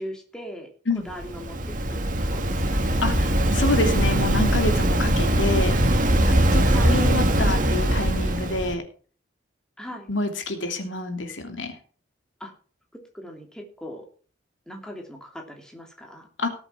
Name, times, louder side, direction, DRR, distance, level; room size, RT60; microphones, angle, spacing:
voice 1, 0.0-0.7 1.0-3.0 6.7-7.0 9.8-10.1 12.4-12.5 12.9-14.1 14.7-16.3, equal, 5° left, 2 dB, 3.0 m, -40 dB
Waves surf, 1.1-8.7, right 1 dB, 45° right, 1.9 m, -21 dB
voice 2, 3.0-5.8 6.2-8.8 10.1-11.8 16.4-16.5, left 2 dB, 90° left, 5 dB, 2.8 m, -27 dB
18.0 x 8.2 x 4.5 m, 0.41 s
head